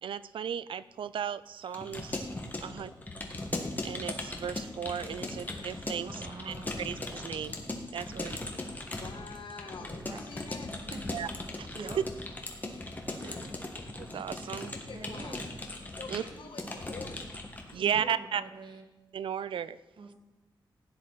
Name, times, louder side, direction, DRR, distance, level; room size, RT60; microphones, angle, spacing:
voice 1, 0.0-2.3 2.6-2.9 3.8-7.6 7.9-8.4 11.1-11.3 11.6-11.7 14.0-14.7 16.1-16.2 17.7-18.4 19.1-19.8, right 8 dB, 90° right, 16 dB, 0.4 m, -35 dB
Keyboard (musical) / Computer keyboard, 1.6-17.7, left 2 dB, 20° left, 1.5 m, -39 dB
voice 2, 2.6-3.0 9.0-10.7 14.7-15.5 16.0-17.3 17.6-17.8, left 5 dB, 75° left, 4 dB, 1.5 m, -46 dB
voice 3, 6.0-6.7 10.1-10.2 10.7-11.2 11.7-12.0 12.6-12.9 13.2-13.4 14.9-15.5 16.4-16.8 17.8-18.9 20.0-20.1, right 3 dB, 65° right, 4 dB, 1.7 m, -45 dB
16.0 x 10.0 x 4.0 m, 1.1 s
wide cardioid pair, 140°, 8 cm